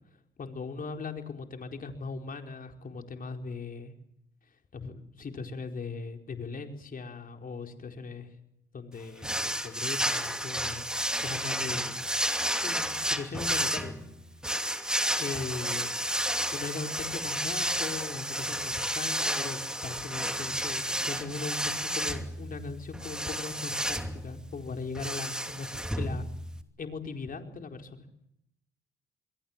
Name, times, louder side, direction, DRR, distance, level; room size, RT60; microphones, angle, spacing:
voice 1, 0.4-3.9 4.7-8.3 8.7-10.9 11.2-11.9 12.6-13.9 15.2-15.9 16.5-26.3 26.8-28.0, left 4 dB, 45° left, 4 dB, 4.7 m, -39 dB
sound 1, 9.2-26.6, equal, 5° right, 2.8 m, -32 dB
28.0 x 22.5 x 7.5 m, 0.78 s
cardioid pair, 90°, 20 cm